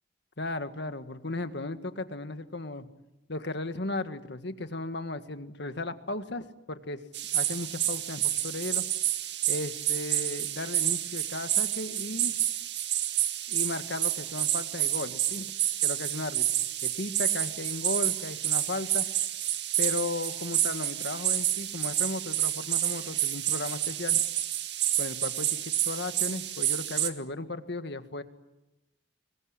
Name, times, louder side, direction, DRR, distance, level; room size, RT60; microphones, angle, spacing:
voice 1, 0.4-2.9 3.3-7.0 7.3-8.8 9.5-12.3 13.5-15.5 15.8-16.5 16.8-19.1 19.8-24.2 25.0-28.2, left 2 dB, 65° left, 10 dB, 1.8 m, -35 dB
sound 1, 7.1-27.1, right 12 dB, 65° right, 2.0 m, -29 dB
26.0 x 22.5 x 9.9 m, 0.96 s
head